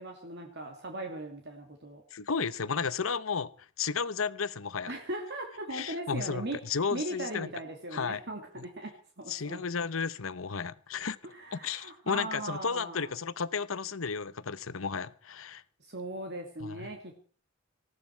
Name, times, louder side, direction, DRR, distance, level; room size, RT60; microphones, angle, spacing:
voice 1, 0.0-2.0 4.9-6.6 6.9-9.6 11.2-13.1 15.8-17.2, right 1 dB, 55° right, 2.4 m, -39 dB
voice 2, 2.1-3.5 3.8-4.9 5.7-7.5 7.9-8.2 8.6-8.7 9.3-11.2 11.5-15.6 16.6-16.9, left 5 dB, 85° left, 0.9 m, -33 dB
19.0 x 16.0 x 4.6 m
head